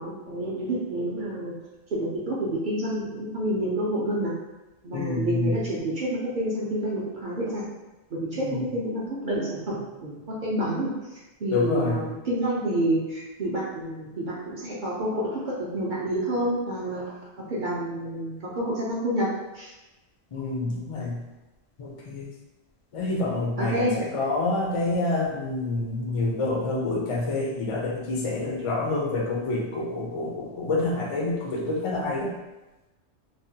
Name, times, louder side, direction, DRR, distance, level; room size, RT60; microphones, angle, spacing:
voice 1, 0.0-1.5 1.9-4.3 4.8-7.6 8.1-17.1 17.5-19.3 19.5-19.7 23.6-23.9, right 1 dB, 55° right, -6 dB, 0.6 m, -28 dB
voice 2, 4.9-5.7 8.3-8.7 11.5-12.1 20.3-21.2 21.8-22.3 22.9-32.3, left 2 dB, 55° left, -2 dB, 0.3 m, -27 dB
3.2 x 2.1 x 2.7 m, 1.0 s
omnidirectional pair, 1.3 m